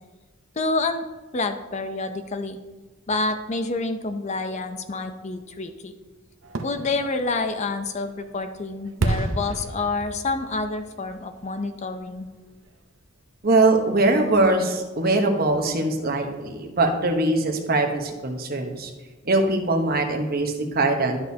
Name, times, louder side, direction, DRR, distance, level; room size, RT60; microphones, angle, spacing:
voice 1, 0.6-1.0 1.3-2.6 3.1-5.9 6.6-12.3, left 3 dB, 35° left, 8 dB, 0.5 m, -28 dB
Fireworks, 6.4-12.2 12.6-12.7, right 2 dB, 70° right, 0.7 m, -32 dB
voice 2, 13.4-18.9 19.2-21.2, right 2 dB, 45° right, 3 dB, 1.0 m, -22 dB
11.5 x 6.4 x 2.8 m, 1.3 s
head